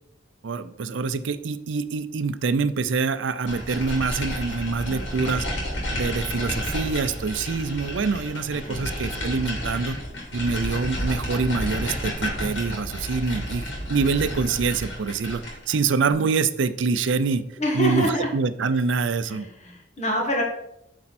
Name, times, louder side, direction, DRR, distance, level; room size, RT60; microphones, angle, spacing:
voice 1, 0.4-5.5 5.9-10.0 10.3-17.4 17.7-19.5, right 4 dB, 75° right, 13 dB, 0.5 m, -25 dB
sound 1, 3.5-15.8, equal, 70° left, 2.8 m, -31 dB
voice 2, 17.6-18.3 19.2-20.4, equal, 35° left, 0 dB, 1.7 m, -26 dB
8.6 x 4.4 x 4.2 m, 0.79 s
head